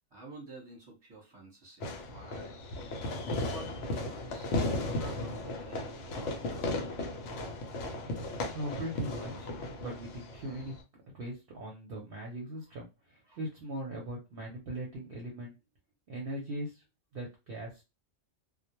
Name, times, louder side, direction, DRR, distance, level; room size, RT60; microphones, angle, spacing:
voice 1, 0.1-2.5 3.4-6.8 13.2-13.4, right 3 dB, 20° right, -2 dB, 1.0 m, -50 dB
Fireworks, 1.8-10.8, left 2 dB, 75° left, 0.9 m, -36 dB
voice 2, 8.5-9.5 9.8-10.7 11.1-15.5 16.1-16.8 17.1-17.8, right 1 dB, 55° right, -2 dB, 0.8 m, -40 dB
2.2 x 2.1 x 2.9 m, 0.26 s
omnidirectional pair, 1.3 m